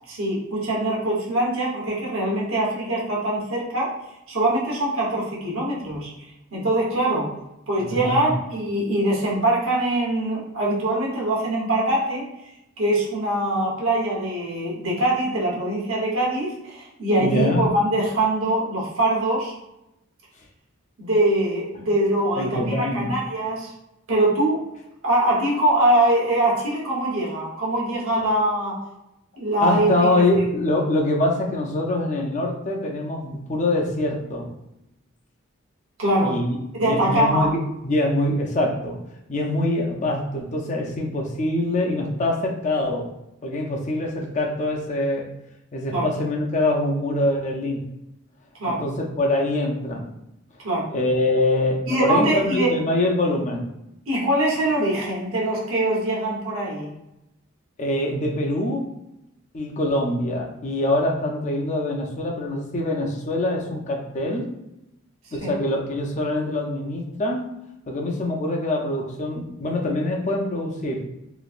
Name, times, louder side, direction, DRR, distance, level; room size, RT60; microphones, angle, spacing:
voice 1, 0.1-3.9 4.3-6.1 6.5-7.3 7.7-12.2 12.8-19.5 21.0-23.7 24.1-24.6 25.0-28.8 29.4-30.3 36.0-36.4 36.8-37.5 45.9-46.0 48.6-48.8 50.6-50.8 51.9-52.7 54.1-56.9 65.4-65.5, right 1 dB, 75° right, -4 dB, 1.0 m, -23 dB
voice 2, 7.8-8.3 17.1-17.6 22.4-23.1 29.6-34.5 36.2-39.0 39.3-43.1 43.4-45.3 45.7-47.8 48.6-50.1 50.9-53.6 57.8-58.9 59.5-64.5 65.3-67.6 67.9-71.0, left 1 dB, 35° left, 1 dB, 0.5 m, -24 dB
3.0 x 2.5 x 2.4 m, 0.88 s
head